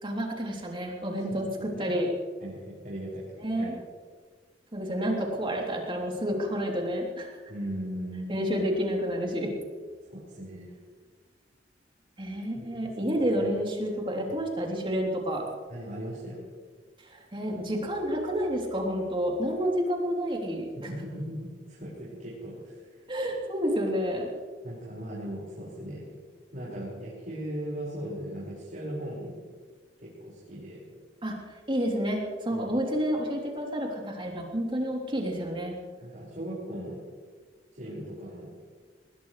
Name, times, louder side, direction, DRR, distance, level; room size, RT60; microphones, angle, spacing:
voice 1, 0.0-2.1 3.4-3.8 4.7-7.3 8.3-9.5 12.2-15.5 17.1-20.9 23.1-24.3 31.2-31.4 31.7-35.8, equal, 30° right, -1 dB, 3.3 m, -29 dB
voice 2, 2.4-3.2 3.6-3.7 7.5-8.3 10.1-10.7 12.5-12.7 13.0-13.5 15.7-16.5 20.9-22.9 24.6-26.0 26.5-29.4 30.0-30.8 32.5-32.7 36.0-37.0 37.8-38.5, right 1 dB, 50° right, -8 dB, 5.5 m, -38 dB
21.0 x 19.5 x 3.3 m, 1.5 s
head